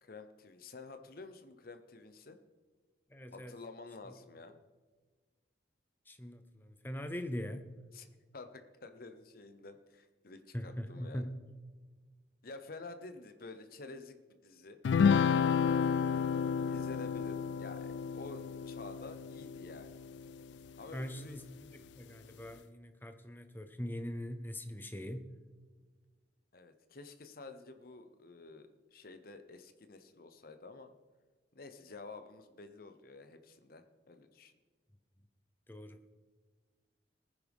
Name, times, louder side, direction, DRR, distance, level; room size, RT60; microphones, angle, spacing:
voice 1, 0.0-2.4 3.3-4.6 7.9-8.1 8.3-11.3 12.4-14.8 16.0-20.0 20.8-21.4 26.5-30.9 31.5-34.5, left 3 dB, 55° left, 8 dB, 0.8 m, -50 dB
voice 2, 3.1-3.5 6.1-7.6 10.5-11.3 20.9-25.3 35.7-36.0, equal, 10° left, 8 dB, 0.7 m, -42 dB
sound 1, 14.8-20.5, left 6 dB, 75° left, 0.3 m, -31 dB
19.0 x 9.9 x 3.6 m, 1.4 s
head